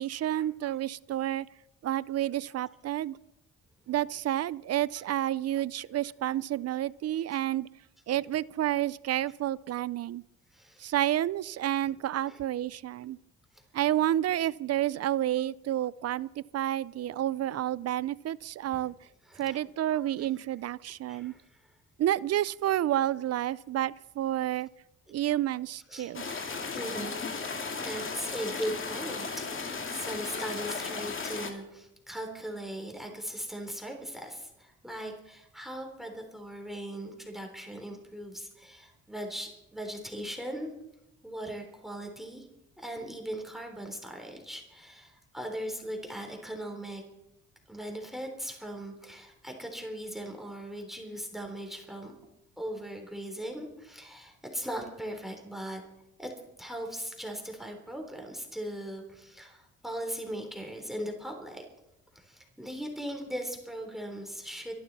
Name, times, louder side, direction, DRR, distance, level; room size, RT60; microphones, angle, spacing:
voice 1, 0.0-1.5 1.8-3.2 3.9-7.7 8.1-10.2 10.8-13.2 13.7-18.9 19.3-21.3 22.0-24.7 25.1-26.2, right 13 dB, 55° right, 21 dB, 0.5 m, -30 dB
voice 2, 10.5-10.9 12.3-12.4 18.7-18.9 19.3-19.6 20.2-20.3 21.1-21.6 25.9-26.1 26.7-27.2 27.8-40.7 41.2-42.5 42.8-47.0 47.7-52.1 52.6-55.8 56.2-56.3 56.6-61.7 62.1-64.7, equal, ahead, 3 dB, 3.7 m, -39 dB
sound 1, 26.1-31.5, left 4 dB, 40° left, 2.4 m, -35 dB
25.0 x 11.5 x 4.1 m, 0.87 s
cardioid pair, 90°, 30 cm